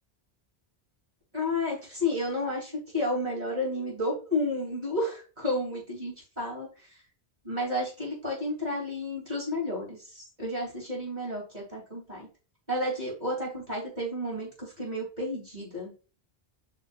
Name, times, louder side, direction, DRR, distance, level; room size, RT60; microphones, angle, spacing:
voice 1, 1.3-6.9 7.4-12.3 12.7-15.9, left 1 dB, 40° right, -3 dB, 3.6 m, -31 dB
8.5 x 5.0 x 2.5 m, 0.34 s
omnidirectional pair, 1.1 m